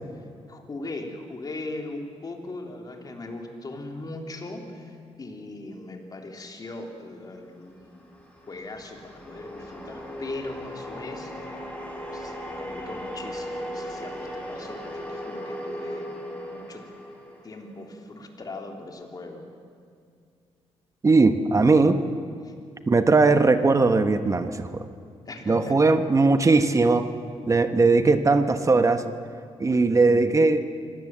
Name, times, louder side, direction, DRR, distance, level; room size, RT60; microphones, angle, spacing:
voice 1, 0.5-8.1 8.5-11.7 12.1-16.9 17.4-19.5 22.4-22.5 25.3-26.0, left 2 dB, 35° left, 3 dB, 3.2 m, -39 dB
sound 1, 7.6-18.0, equal, 10° left, 4.5 m, -37 dB
voice 2, 21.0-22.0 22.9-24.9 25.5-27.1 27.5-29.0 29.6-30.6, right 3 dB, 30° right, 9 dB, 1.1 m, -19 dB
25.0 x 17.0 x 7.8 m, 2.2 s
cardioid pair, 95°, 11 cm